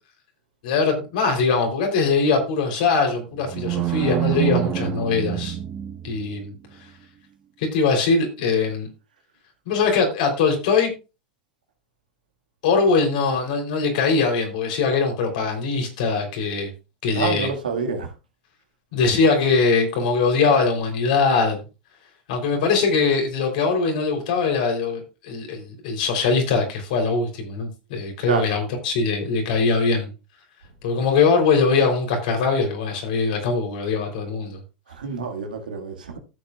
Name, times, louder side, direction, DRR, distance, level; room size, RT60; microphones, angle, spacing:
voice 1, 0.6-5.6 6.0-6.5 7.6-8.9 9.7-10.9 12.6-16.7 17.0-17.5 18.9-21.6 22.3-30.1 30.8-34.6, left 4 dB, 70° left, 3.4 m, -21 dB
sound 1, 3.2-6.4, right 13 dB, 40° right, 1.1 m, -26 dB
voice 2, 17.1-18.1 28.3-28.5 34.9-36.2, right 5 dB, 90° right, 1.8 m, -27 dB
14.5 x 7.3 x 2.4 m
hypercardioid pair, 95°, 5 cm